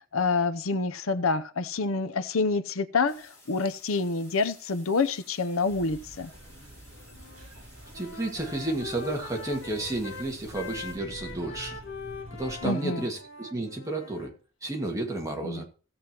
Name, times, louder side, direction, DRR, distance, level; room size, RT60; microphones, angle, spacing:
voice 1, 0.1-6.3 12.6-13.1 15.4-15.6, left 4 dB, 90° left, 0.7 m, -27 dB
sound 1, 3.1-11.0, left 1 dB, 10° left, 5.1 m, -55 dB
sound 2, 5.7-12.7, equal, 65° right, 2.6 m, -48 dB
Wind instrument woodwind instrument, 7.1-7.5 7.8-14.3, left 3 dB, 70° left, 1.9 m, -43 dB
voice 2, 7.9-11.8 12.3-14.3 14.6-15.7, right 2 dB, 15° right, 2.0 m, -32 dB
16.5 x 7.9 x 3.0 m
head